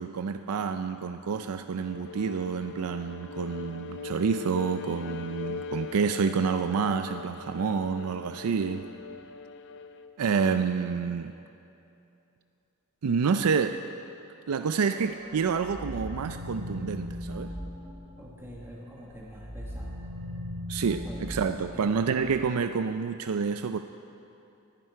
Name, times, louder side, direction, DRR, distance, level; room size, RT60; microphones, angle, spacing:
voice 1, 0.0-8.9 10.2-11.3 13.0-13.8 14.5-17.5 20.7-23.8, right 5 dB, 75° right, 8 dB, 0.4 m, -28 dB
Bowed string instrument, 1.8-10.2, left 4 dB, 55° left, 0.6 m, -40 dB
sound 1, 14.8-18.7 19.1-22.5, equal, 40° right, 2.6 m, -39 dB
voice 2, 18.2-20.0 21.0-21.3 21.7-21.9, equal, 10° right, -3 dB, 1.3 m, -45 dB
19.0 x 11.0 x 4.7 m, 2.8 s
head